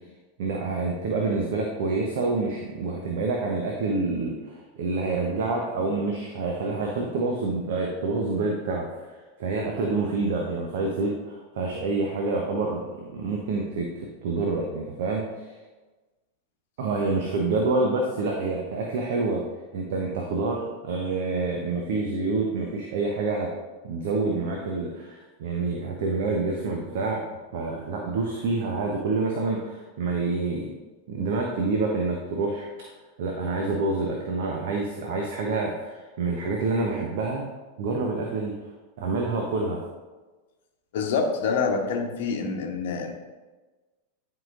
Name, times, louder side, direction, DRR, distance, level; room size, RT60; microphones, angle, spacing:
voice 1, 0.4-15.5 16.8-19.4 19.7-23.5 23.8-27.2 27.5-30.7 31.1-32.9 33.2-37.4 37.8-38.5 39.0-39.8, right 3 dB, 55° right, 0 dB, 0.9 m, -27 dB
voice 2, 40.9-43.1, left 5 dB, 55° left, 3 dB, 1.0 m, -26 dB
11.0 x 4.8 x 2.5 m, 1.2 s
figure-of-eight pair, 90°, 0 cm